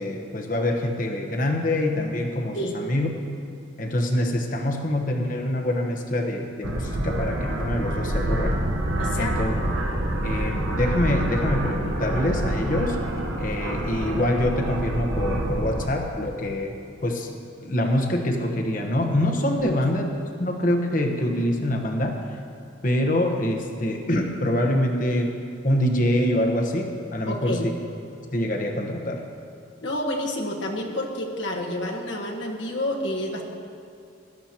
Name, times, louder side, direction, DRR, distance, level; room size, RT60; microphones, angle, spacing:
voice 1, 0.0-3.1 3.8-8.5 9.2-9.5 10.2-13.0 13.4-16.7 17.0-17.3 17.6-20.1 20.4-22.2 22.8-25.3 25.6-27.6 28.3-29.2, left 1 dB, 40° left, 2 dB, 1.1 m, -25 dB
sound 1, 6.6-15.9, right 1 dB, 75° right, 1.1 m, -27 dB
voice 2, 9.0-9.6 19.8-19.9 27.3-27.7 29.8-33.4, left 1 dB, 65° left, 1 dB, 1.4 m, -29 dB
17.0 x 12.0 x 2.9 m, 2.6 s
head